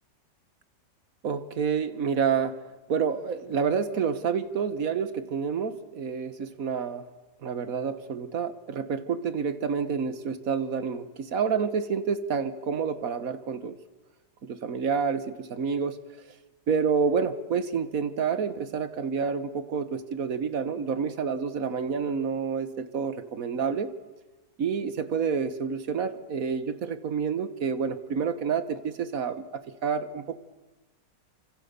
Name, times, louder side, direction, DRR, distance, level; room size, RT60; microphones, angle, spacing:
voice 1, 1.2-2.6 2.9-7.0 7.4-13.8 14.4-16.0 16.7-23.9 24.6-30.4, right 6 dB, 55° right, 12 dB, 1.7 m, -28 dB
29.0 x 26.0 x 7.0 m, 1.2 s
omnidirectional pair, 1.9 m